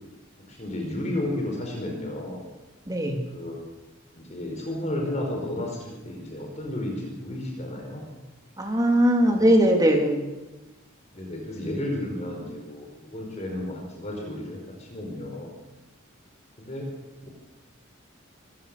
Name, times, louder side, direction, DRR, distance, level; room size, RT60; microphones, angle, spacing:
voice 1, 0.5-2.5 3.3-3.6 4.1-8.1 9.3-9.5 11.1-15.6 16.6-16.9 17.2-17.3, left 1 dB, 35° left, 1 dB, 4.7 m, -33 dB
voice 2, 2.9-3.3 8.6-10.3, right 1 dB, 20° right, 2 dB, 3.2 m, -20 dB
26.0 x 16.0 x 6.9 m, 1.1 s
head